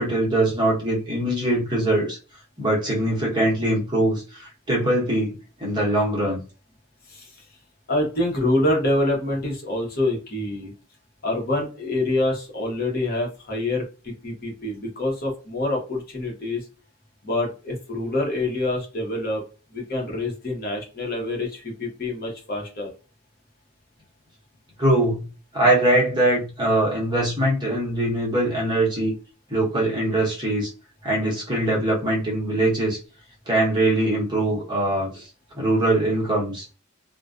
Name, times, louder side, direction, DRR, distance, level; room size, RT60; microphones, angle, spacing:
voice 1, 0.0-2.2 2.6-6.4 24.8-25.2 25.5-29.1 29.5-30.7 31.0-33.0 33.5-35.1 35.6-36.6, right 1 dB, 20° right, -4 dB, 0.9 m, -22 dB
voice 2, 7.9-10.7 11.2-16.6 17.2-19.4 19.7-22.9, left 1 dB, 45° left, -1 dB, 0.9 m, -26 dB
2.3 x 2.2 x 2.4 m, 0.34 s
head